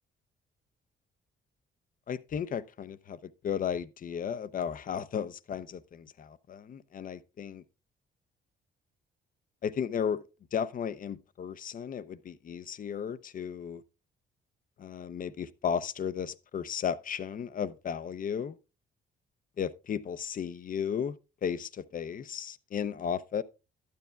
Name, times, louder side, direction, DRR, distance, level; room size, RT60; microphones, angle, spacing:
voice 1, 2.1-7.6 9.6-10.2 10.5-13.8 14.8-18.6 19.6-21.2 21.4-23.4, left 7 dB, 45° left, 0.6 m, -34 dB
12.0 x 9.3 x 2.3 m
cardioid pair, 90°, 20 cm